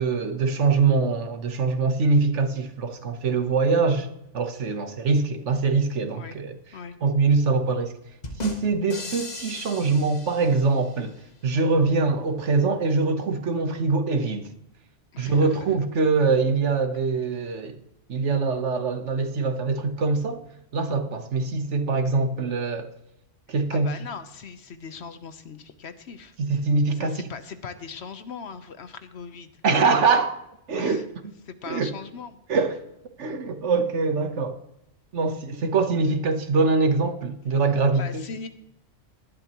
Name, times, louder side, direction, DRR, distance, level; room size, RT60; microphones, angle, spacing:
voice 1, 0.0-4.1 4.3-6.5 7.0-8.0 8.4-14.4 15.2-17.8 18.1-20.4 20.7-22.9 23.5-23.9 26.4-27.3 29.6-30.4 30.7-31.0 31.7-31.9 32.5-32.8 33.2-34.6 35.1-38.2, right 4 dB, 70° right, 1.4 m, -23 dB
sound 1, 8.2-11.1, left 3 dB, 35° left, 1.5 m, -38 dB
voice 2, 15.1-15.6 23.5-26.3 26.9-29.5 30.8-31.0 31.5-32.4 37.5-37.6 37.9-38.5, left 5 dB, 65° left, 1.1 m, -39 dB
18.5 x 11.5 x 3.0 m
omnidirectional pair, 1.2 m